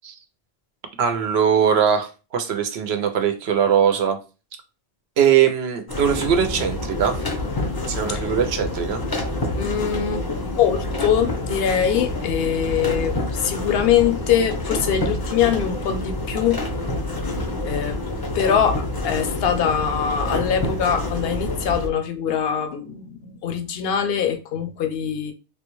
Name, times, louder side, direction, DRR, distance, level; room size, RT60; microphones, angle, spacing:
voice 1, 1.0-4.2 5.2-7.1 7.9-9.0, right 8 dB, 70° right, 0.8 m, -20 dB
sound 1, 5.9-21.9, left 2 dB, 30° left, 0.4 m, -27 dB
voice 2, 9.6-10.3 10.6-16.6 17.7-18.0 18.3-25.3, left 8 dB, 65° left, 0.8 m, -23 dB
3.4 x 2.2 x 3.0 m
omnidirectional pair, 1.2 m